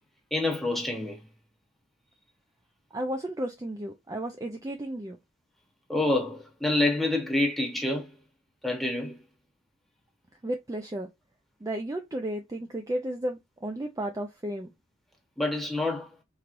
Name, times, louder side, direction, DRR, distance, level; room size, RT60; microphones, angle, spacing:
voice 1, 0.3-1.2 5.9-8.2 8.6-9.2 15.4-16.1, left 2 dB, ahead, 1.1 m, -27 dB
voice 2, 2.9-5.2 10.4-11.1 11.6-14.7, right 1 dB, 15° right, 0.4 m, -33 dB
4.2 x 3.0 x 2.6 m
head